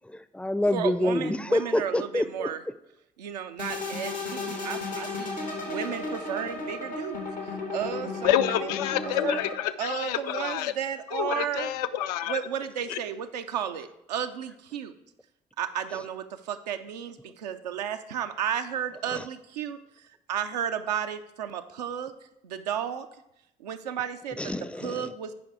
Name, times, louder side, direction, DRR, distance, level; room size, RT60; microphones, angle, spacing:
voice 1, 0.1-2.5 15.9-16.0 19.1-19.3 24.4-25.1, left 1 dB, 5° left, 13 dB, 0.5 m, -27 dB
voice 2, 0.7-2.6 3.2-5.3 5.7-7.3 7.7-8.5 9.2-9.4 9.8-11.7 12.3-14.9 15.6-19.8 20.3-22.1 22.4-23.1 23.6-24.4 24.8-25.3, right 8 dB, 75° right, 8 dB, 0.5 m, -33 dB
sound 1, 3.6-9.5, left 3 dB, 90° left, 1.2 m, -34 dB
voice 3, 8.2-10.7 11.1-12.4 12.9-13.0, left 11 dB, 70° left, 11 dB, 0.4 m, -28 dB
9.2 x 5.2 x 4.6 m, 0.82 s
figure-of-eight pair, 40°, 21 cm